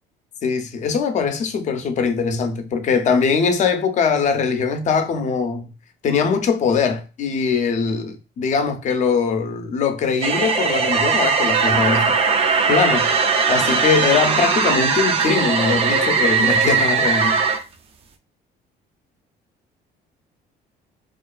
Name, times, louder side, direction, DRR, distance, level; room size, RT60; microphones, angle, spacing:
voice 1, 0.4-5.7 6.0-12.2 12.7-13.1 13.5-17.4, left 5 dB, 45° left, 0.5 m, -21 dB
sound 1, 10.2-17.6, right 5 dB, 35° right, 0.4 m, -19 dB
2.4 x 2.2 x 2.2 m
cardioid pair, 110°, 17 cm